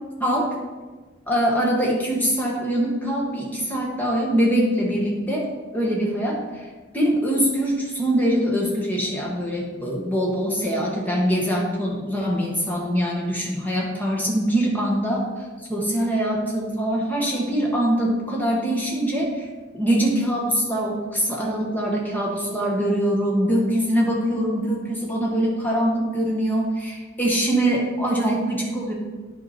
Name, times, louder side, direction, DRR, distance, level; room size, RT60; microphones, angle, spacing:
voice 1, 1.3-5.4 5.7-6.7 6.9-15.3 15.7-19.5 19.7-28.9, right 1 dB, 10° left, -3 dB, 1.7 m, -23 dB
10.0 x 5.2 x 4.4 m, 1.3 s
head